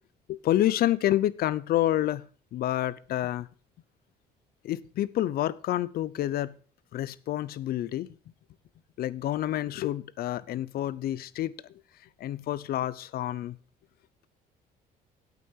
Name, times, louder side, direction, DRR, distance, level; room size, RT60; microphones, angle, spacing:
voice 1, 0.3-3.5 4.6-6.6 6.9-8.1 9.0-11.5 12.2-13.6, left 13 dB, 65° left, 0.7 m, -28 dB
9.1 x 8.5 x 6.4 m
cardioid pair, 110°, 17 cm